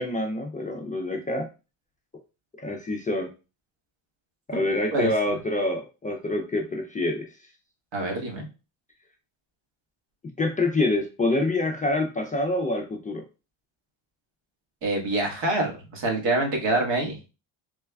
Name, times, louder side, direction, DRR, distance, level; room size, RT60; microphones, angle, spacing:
voice 1, 0.0-1.5 2.6-3.3 4.5-7.3 10.4-13.2, left 2 dB, 20° left, 2 dB, 0.4 m, -26 dB
voice 2, 4.5-5.1 7.9-8.4 14.8-17.2, right 2 dB, 60° right, 1 dB, 1.4 m, -26 dB
3.3 x 2.2 x 3.3 m, 0.30 s
cardioid pair, 95°, 48 cm